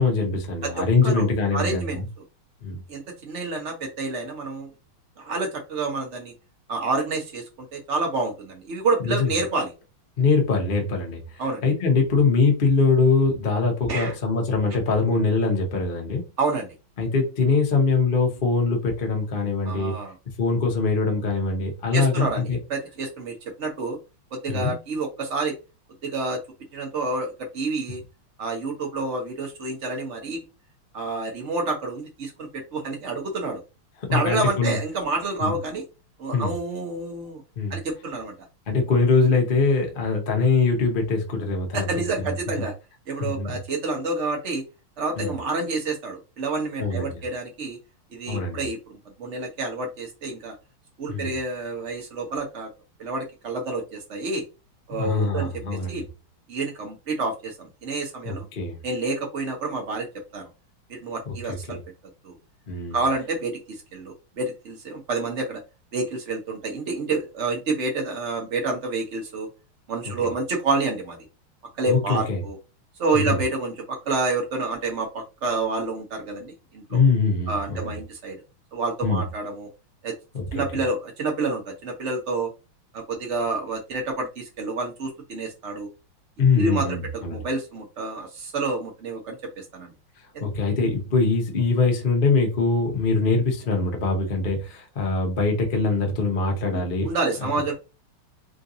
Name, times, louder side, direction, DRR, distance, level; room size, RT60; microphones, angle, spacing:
voice 1, 0.0-2.1 2.6-2.8 9.0-9.3 10.2-16.2 17.0-19.9 20.4-22.6 24.5-24.7 34.0-34.8 35.4-35.5 36.3-36.5 37.6-37.8 38.7-41.9 42.2-42.3 43.2-43.5 45.2-45.3 46.8-47.2 48.3-48.6 51.1-51.3 54.9-56.0 58.2-58.8 61.3-61.8 62.7-63.0 71.9-72.4 73.1-73.4 76.9-78.0 79.0-79.2 80.3-80.6 86.4-87.4 90.4-97.1, left 4 dB, 45° left, 0.6 m, -23 dB
voice 2, 0.6-1.3 1.5-2.0 2.9-4.7 5.2-6.3 6.7-9.7 11.4-11.6 13.9-14.1 16.4-16.7 19.6-20.2 21.9-24.0 24.3-25.5 26.0-26.4 26.7-28.0 28.4-30.4 30.9-33.6 34.1-35.8 36.2-37.4 37.7-38.3 41.7-42.7 43.1-44.6 45.0-47.8 48.1-50.5 51.0-52.7 53.0-54.4 54.9-55.6 55.9-56.0 56.5-58.5 58.8-60.5 60.9-61.8 62.2-62.4 62.9-65.6 65.9-69.5 69.9-71.2 71.8-72.6 73.0-77.0 77.5-78.4 78.7-79.7 80.0-80.1 80.5-82.5 82.9-85.9 86.6-89.9 90.3-90.4 96.7-97.7, right 3 dB, 50° right, 0.9 m, -28 dB
3.8 x 2.6 x 2.6 m
omnidirectional pair, 2.4 m